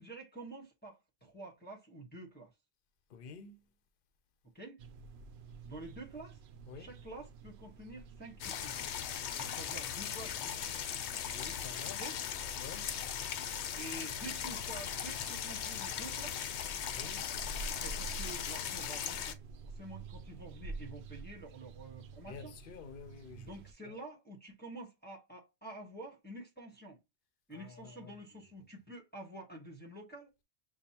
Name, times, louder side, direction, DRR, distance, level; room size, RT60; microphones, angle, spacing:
voice 1, 0.0-2.5 4.5-4.8 5.6-6.4 6.7-8.9 9.4-10.6 12.0-12.2 13.8-16.4 17.8-22.5 23.3-27.0 27.5-30.3, right 2 dB, 10° left, 1.2 m, -48 dB
voice 2, 3.1-3.6 6.7-6.9 11.2-12.1 12.6-12.9 16.9-17.3 22.2-23.5 23.9-24.0 27.5-28.1, left 5 dB, 55° left, 0.8 m, -49 dB
sound 1, 4.8-23.7, right 3 dB, 75° right, 0.8 m, -50 dB
sound 2, 8.4-19.3, left 9 dB, 85° left, 0.9 m, -38 dB
6.9 x 2.3 x 2.8 m
omnidirectional pair, 1.1 m